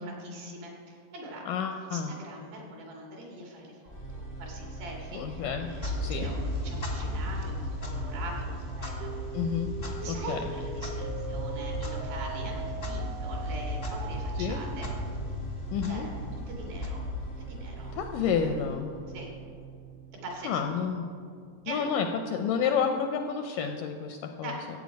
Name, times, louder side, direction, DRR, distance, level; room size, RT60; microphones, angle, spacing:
voice 1, 0.0-1.4 1.8-9.1 10.0-14.9 15.9-17.1 17.4-17.9 19.1-19.3 20.2-20.6 21.7-22.0 24.4-24.6, right 2 dB, 70° right, -1 dB, 4.1 m, -42 dB
voice 2, 1.5-2.1 5.1-5.7 6.0-6.3 9.3-9.7 10.0-10.4 14.4-14.6 15.7-16.1 17.9-19.0 20.4-21.1 21.7-24.6, left 7 dB, 80° left, 5 dB, 1.9 m, -30 dB
sound 1, 3.8-21.9, right 2 dB, 20° left, 0.7 m, -42 dB
Clock, 5.6-17.6, left 1 dB, 60° left, 0.6 m, -36 dB
sound 2, 9.0-15.0, right 7 dB, 90° right, 1.8 m, -42 dB
15.5 x 8.4 x 5.2 m, 2.3 s
omnidirectional pair, 4.3 m